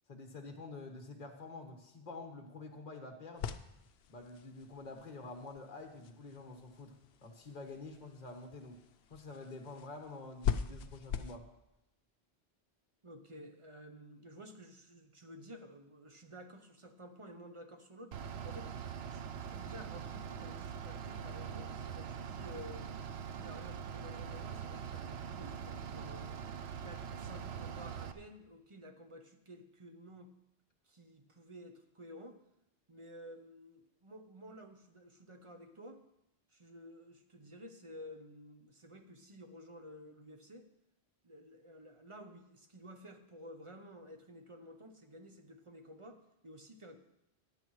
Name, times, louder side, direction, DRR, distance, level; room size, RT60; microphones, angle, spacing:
voice 1, 0.1-3.5 4.1-6.9 7.2-8.8 9.1-11.5, left 3 dB, 45° left, 4 dB, 1.4 m, -48 dB
sound 1, 3.4-11.4, left 8 dB, 75° left, 0.8 m, -42 dB
voice 2, 13.0-18.2 18.4-18.7 19.1-22.9 23.3-26.4 26.8-30.3 30.9-32.4 32.9-36.0 36.5-40.7 41.2-47.0, equal, 30° right, 5 dB, 0.8 m, -52 dB
Bus / Idling, 18.1-28.1, right 7 dB, 75° right, 0.9 m, -43 dB
15.0 x 10.5 x 3.1 m, 0.86 s
omnidirectional pair, 1.1 m